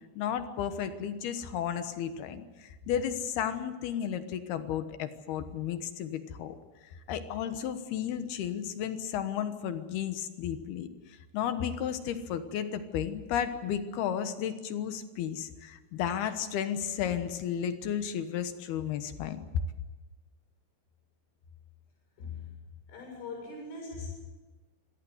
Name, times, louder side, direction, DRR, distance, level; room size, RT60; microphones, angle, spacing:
voice 1, 0.2-6.6 7.1-19.4, left 9 dB, 70° left, 9 dB, 2.8 m, -33 dB
voice 2, 22.2-22.5 22.9-24.1, left 4 dB, 85° left, 1 dB, 9.7 m, -41 dB
26.5 x 17.5 x 7.9 m, 1.2 s
omnidirectional pair, 5.5 m